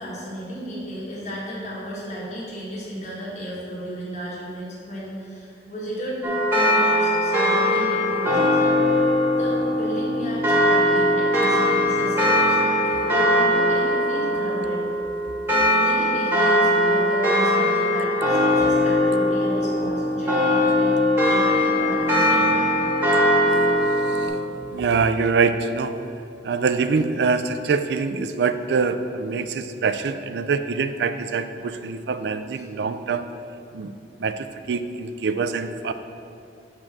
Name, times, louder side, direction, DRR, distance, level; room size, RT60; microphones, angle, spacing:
voice 1, 0.0-6.3 6.5-8.6 9.3-14.8 15.5-21.0 21.3-22.9 32.5-32.6, equal, 40° left, -6 dB, 1.8 m, -34 dB
sound 1, 6.2-24.3, left 1 dB, 10° right, 1.2 m, -20 dB
voice 2, 24.7-26.0 26.4-33.3 33.7-33.9 34.2-35.9, right 4 dB, 65° right, 11 dB, 0.4 m, -24 dB
7.4 x 3.7 x 6.0 m, 2.5 s
head